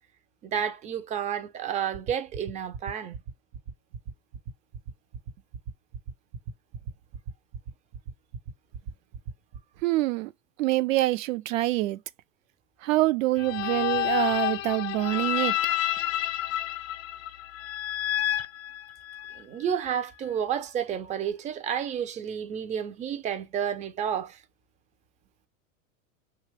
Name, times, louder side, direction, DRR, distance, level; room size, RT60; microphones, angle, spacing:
voice 1, 0.4-3.2 19.4-24.4, right 8 dB, 20° right, 0.3 m, -31 dB
sound 1, 1.9-9.6, right 5 dB, 55° right, 0.9 m, -37 dB
voice 2, 9.8-10.3 10.6-12.0 12.8-15.5, right 17 dB, 75° right, 0.5 m, -25 dB
sound 2, 13.4-19.4, left 13 dB, 70° left, 0.5 m, -29 dB
2.9 x 2.3 x 3.2 m
hypercardioid pair, 115°, 40 cm